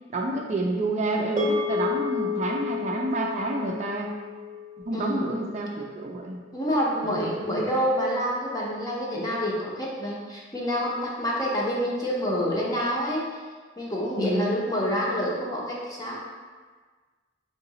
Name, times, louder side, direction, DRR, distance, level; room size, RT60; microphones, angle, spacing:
voice 1, 0.1-4.1 4.9-6.4 7.0-7.3 14.2-14.6, right 2 dB, 40° right, 0 dB, 0.4 m, -28 dB
sound 1, 1.4-5.9, left 5 dB, 20° right, 0.8 m, -31 dB
voice 2, 4.9-5.2 6.5-13.3 13.8-16.2, equal, 20° left, -4 dB, 0.7 m, -27 dB
3.8 x 2.9 x 3.9 m, 1.4 s
head